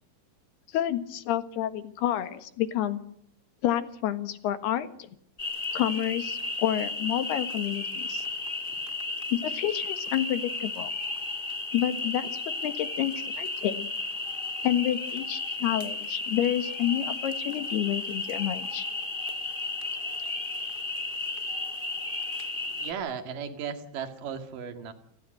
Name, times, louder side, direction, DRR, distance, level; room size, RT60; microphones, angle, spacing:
voice 1, 0.7-3.0 3.6-5.1 5.7-8.3 9.3-10.9 11.7-13.9 14.6-18.9, left 12 dB, 80° left, 11 dB, 3.5 m, -29 dB
sound 1, 5.4-22.9, left 2 dB, 15° left, 1.9 m, -33 dB
voice 2, 22.7-24.9, right 7 dB, 60° right, 7 dB, 3.5 m, -36 dB
29.0 x 18.5 x 7.9 m, 0.72 s
omnidirectional pair, 4.6 m